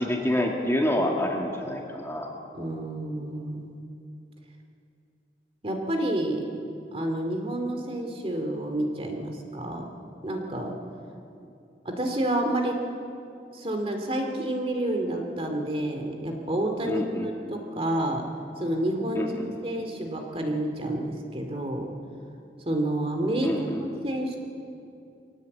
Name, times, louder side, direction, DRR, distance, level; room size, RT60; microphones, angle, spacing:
voice 1, 0.0-2.3 16.9-17.3 19.1-19.5 23.4-24.0, left 1 dB, 15° left, 0 dB, 2.0 m, -27 dB
voice 2, 2.5-3.9 5.6-6.5 6.9-9.9 10.2-10.8 11.8-12.8 13.5-18.3 18.6-19.3 19.6-21.9 22.7-23.5 23.8-24.4, right 1 dB, 35° right, 3 dB, 2.4 m, -29 dB
23.5 x 17.5 x 8.5 m, 2.7 s
head